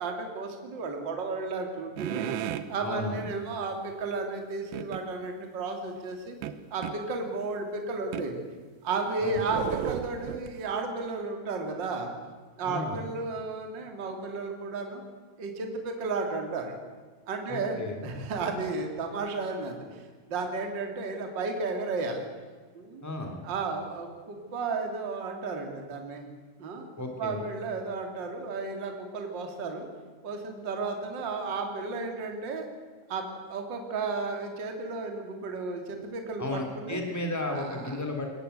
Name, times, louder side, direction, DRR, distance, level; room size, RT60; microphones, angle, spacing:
voice 1, 0.0-2.3 2.7-6.4 6.7-8.4 8.8-12.1 12.6-15.0 15.4-16.8 17.3-22.3 22.7-23.0 23.4-26.3 26.6-26.8 27.2-29.9 30.2-32.7 33.1-37.0 37.5-38.0, right 3 dB, 30° right, 4 dB, 2.5 m, -33 dB
sound 1, 2.0-2.7 4.7-5.0 6.4-7.0 8.1-8.3 8.9-10.6, right 10 dB, 75° right, 2.8 m, -34 dB
voice 2, 2.8-3.2 9.2-9.4 12.6-13.0 17.5-18.0 23.0-23.4 27.0-27.5 36.4-38.2, left 2 dB, 5° left, 3 dB, 1.8 m, -34 dB
22.0 x 18.5 x 8.1 m, 1.5 s
omnidirectional pair, 5.4 m